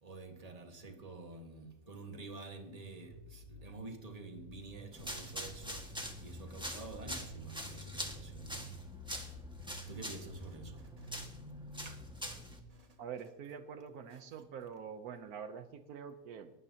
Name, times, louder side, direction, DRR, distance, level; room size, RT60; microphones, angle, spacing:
voice 1, 0.0-5.8 6.2-8.7 9.8-11.1 11.8-12.0 12.7-12.9 14.1-14.2, right 3 dB, 25° right, 4 dB, 1.6 m, -49 dB
sound 1, 2.5-12.5, equal, 45° right, 4.2 m, -51 dB
sound 2, 4.9-12.6, equal, 5° right, 1.6 m, -45 dB
voice 2, 13.0-16.5, right 7 dB, 75° right, 9 dB, 1.3 m, -45 dB
19.0 x 12.5 x 2.8 m, 0.95 s
omnidirectional pair, 1.6 m